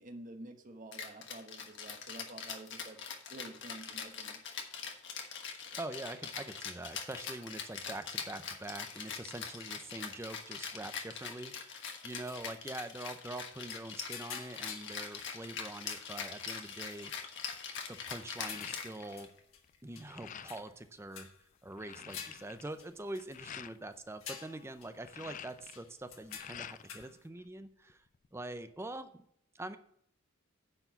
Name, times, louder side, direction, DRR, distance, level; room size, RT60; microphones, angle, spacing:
voice 1, 0.0-3.0 3.3-4.4, right 2 dB, 40° right, 6 dB, 1.1 m, -49 dB
Rattle (instrument), 0.9-19.4, left 6 dB, 55° left, 1.3 m, -43 dB
voice 2, 5.7-17.4 17.9-19.3 19.8-21.3 21.6-28.1 28.3-29.2 29.5-29.8, right 2 dB, 10° right, 10 dB, 0.5 m, -44 dB
sound 1, 11.8-12.5 13.0-13.2 13.6-15.5 15.8-16.2 16.8-17.2 17.7-19.6 19.9-20.9 21.1-21.4 21.9-23.5 23.9-24.0 24.2-25.1 25.5-27.2, left 7 dB, 70° left, 1.3 m, -50 dB
sound 2, 16.8-17.1 17.5-19.3 19.6-20.8 21.2-21.3 21.5-23.8 24.8-27.0 27.4-28.3, left 9 dB, 35° left, 0.3 m, -49 dB
9.8 x 4.6 x 6.9 m, 0.70 s
head